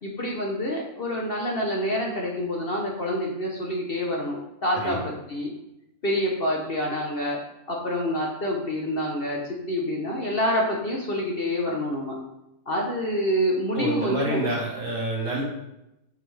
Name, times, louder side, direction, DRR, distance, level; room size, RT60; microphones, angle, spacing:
voice 1, 0.0-5.5 6.0-7.4 7.7-9.4 9.7-12.1 12.7-14.4, equal, 45° left, -1 dB, 1.0 m, -27 dB
voice 2, 13.7-15.4, right 2 dB, 65° right, -3 dB, 2.2 m, -28 dB
6.2 x 5.4 x 3.4 m, 0.88 s
omnidirectional pair, 1.7 m